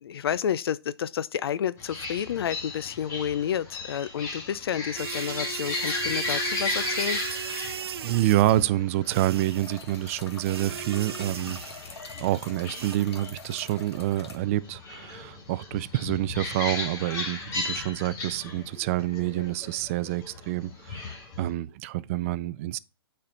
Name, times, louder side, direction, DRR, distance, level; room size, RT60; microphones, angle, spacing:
voice 1, 0.0-7.2, left 9 dB, 70° left, 0.5 m, -30 dB
sound 1, 1.8-21.5, left 3 dB, 20° left, 2.0 m, -36 dB
sound 2, 5.0-8.6 9.1-9.8 10.4-12.0 12.7-13.0, right 8 dB, 70° right, 0.7 m, -37 dB
voice 2, 8.0-11.6 12.2-22.8, right 15 dB, 35° right, 0.3 m, -27 dB
sound 3, 9.4-14.4, left 5 dB, 85° left, 1.3 m, -45 dB
8.7 x 4.4 x 3.8 m
hypercardioid pair, 145°, 13 cm